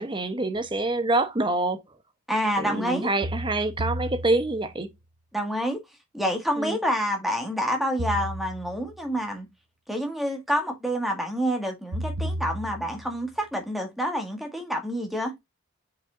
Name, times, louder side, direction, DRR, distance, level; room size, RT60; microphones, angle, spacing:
voice 1, 0.0-1.8 2.6-4.9 6.6-6.8, right 2 dB, 20° right, 0.9 m, -26 dB
sound 1, 0.6-0.7 3.2-4.8 8.0-9.1 11.9-13.3, equal, 65° right, 0.8 m, -33 dB
voice 2, 2.3-3.1 5.3-5.8 6.1-9.5 9.9-15.3, equal, ahead, 1.8 m, -28 dB
7.6 x 4.9 x 2.5 m
head